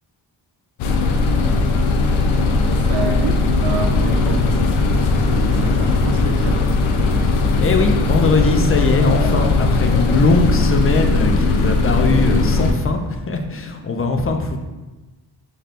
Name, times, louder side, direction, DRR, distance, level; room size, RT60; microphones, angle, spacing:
sound 1, 0.8-12.7, left 3 dB, 90° left, 0.5 m, -18 dB
voice 1, 2.8-6.6, right 4 dB, 60° right, 3 dB, 0.7 m, -27 dB
voice 2, 7.1-13.0 13.3-14.6, left 3 dB, 30° left, 5 dB, 0.4 m, -20 dB
4.3 x 3.3 x 2.5 m, 1.1 s
cardioid pair, 70°, 47 cm